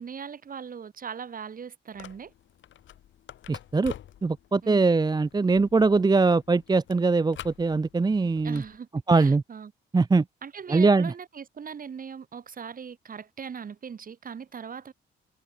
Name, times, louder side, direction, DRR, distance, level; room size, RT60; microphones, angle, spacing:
voice 1, 0.0-2.3 4.6-4.9 8.4-9.7 10.4-14.9, right 6 dB, 45° right, 3.6 m, -40 dB
sound 1, 1.9-8.8, left 11 dB, 70° left, 5.0 m, -48 dB
voice 2, 3.5-3.9 4.2-8.6 9.1-9.4 9.9-10.2 10.7-11.1, right 3 dB, 20° right, 0.9 m, -22 dB
cardioid pair, 90°, 20 cm